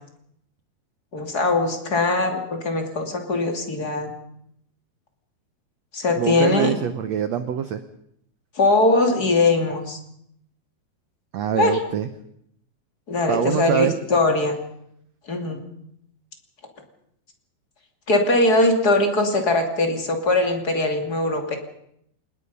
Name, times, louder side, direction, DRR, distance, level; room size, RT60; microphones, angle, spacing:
voice 1, 1.1-4.1 5.9-6.7 8.5-10.0 11.5-11.8 13.1-14.5 15.3-15.6 18.1-21.6, left 2 dB, 30° left, 4 dB, 2.7 m, -21 dB
voice 2, 6.2-7.8 11.3-12.1 13.3-13.9, right 9 dB, 75° right, 10 dB, 1.5 m, -24 dB
26.0 x 20.0 x 5.5 m, 0.73 s
omnidirectional pair, 4.4 m